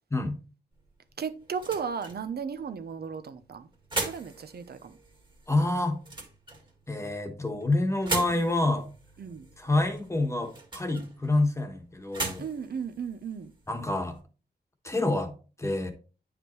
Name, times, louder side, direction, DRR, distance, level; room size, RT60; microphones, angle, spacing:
sound 1, 0.7-14.2, right 2 dB, 25° right, 1.8 m, -40 dB
voice 1, 1.2-3.7 4.0-5.0 9.2-9.5 12.4-13.5, right 6 dB, 60° right, 0.8 m, -35 dB
voice 2, 5.5-6.0 6.9-8.9 9.6-12.4 13.7-14.2 14.8-15.3 15.6-15.9, left 2 dB, 15° left, 1.4 m, -27 dB
9.3 x 4.9 x 3.1 m
wide cardioid pair, 120°, 18 cm